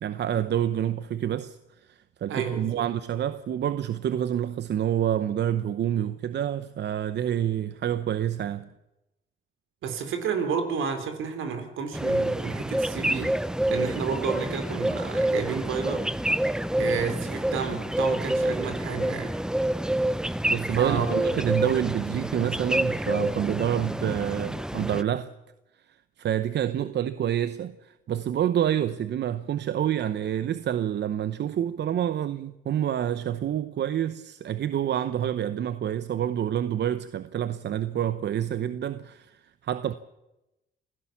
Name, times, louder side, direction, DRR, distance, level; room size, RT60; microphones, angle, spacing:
voice 1, 0.0-1.6 1.9-8.7 20.5-25.3 26.2-39.9, right 10 dB, 60° right, 0.9 m, -28 dB
voice 2, 2.3-2.8 9.8-16.1 16.8-19.3 20.7-21.3 26.7-26.9, right 6 dB, 80° right, 3.8 m, -31 dB
sound 1, 11.9-25.0, right 1 dB, 5° right, 0.7 m, -28 dB
27.5 x 16.0 x 7.3 m
cardioid pair, 90°, 20 cm